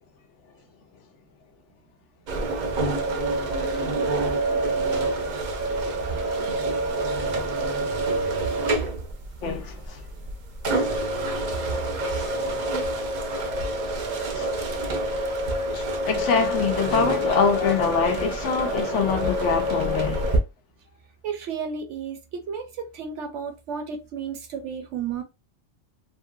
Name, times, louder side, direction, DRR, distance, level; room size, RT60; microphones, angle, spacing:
electric blinds moving up - Motorsound, 2.3-20.4, right 1 dB, 50° right, 0.6 m, -27 dB
voice 1, 9.4-10.0 10.8-10.9 12.2-12.3 14.3-14.5 15.7-20.3, left 5 dB, 90° left, 1.0 m, -25 dB
voice 2, 21.2-25.2, right 6 dB, 80° right, 1.1 m, -33 dB
2.8 x 2.7 x 2.3 m
omnidirectional pair, 1.2 m